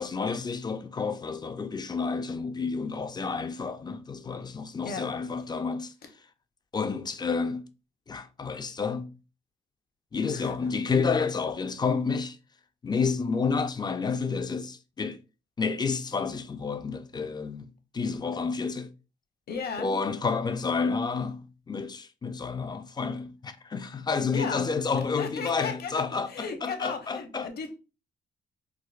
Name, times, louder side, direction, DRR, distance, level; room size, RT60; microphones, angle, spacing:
voice 1, 0.0-5.9 6.7-7.6 8.1-9.1 10.1-12.4 12.8-15.2 15.6-18.9 19.8-27.5, left 5 dB, 20° left, 0.3 m, -30 dB
voice 2, 19.5-19.9 24.3-24.7 25.1-27.7, left 5 dB, 50° left, 0.8 m, -35 dB
4.5 x 2.0 x 2.3 m
cardioid pair, 90°, 20 cm